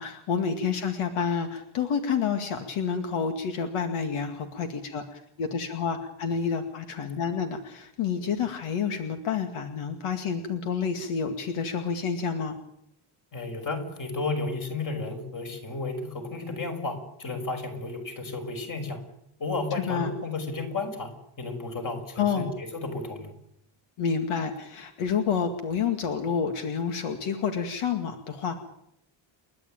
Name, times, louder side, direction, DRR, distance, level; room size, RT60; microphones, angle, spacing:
voice 1, 0.0-12.5 19.7-20.1 22.2-22.5 24.0-28.5, left 6 dB, 85° left, 6 dB, 2.3 m, -29 dB
voice 2, 13.3-19.0 19.4-21.1 21.4-23.3, left 3 dB, 40° left, 4 dB, 5.9 m, -33 dB
30.0 x 12.0 x 9.0 m, 0.75 s
cardioid pair, 145°, 49 cm